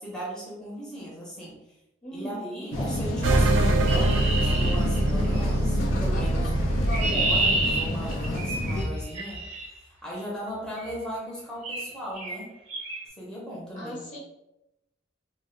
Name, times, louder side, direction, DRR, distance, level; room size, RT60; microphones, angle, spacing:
voice 1, 0.0-1.6 2.1-12.6 13.2-14.1, equal, 5° left, -6 dB, 0.6 m, -37 dB
voice 2, 2.0-2.6 13.7-14.2, right 1 dB, 40° left, -3 dB, 0.8 m, -39 dB
sound 1, 2.7-8.8, left 1 dB, 85° left, 0.5 m, -29 dB
sound 2, 3.2-8.1, right 2 dB, 85° right, 0.5 m, -25 dB
Chirp tweet, 3.9-5.5 6.5-9.7 10.8-11.0 11.6-11.9 12.1-12.4 12.7-13.0, right 2 dB, 35° right, 0.7 m, -30 dB
2.4 x 2.0 x 3.8 m, 0.89 s
head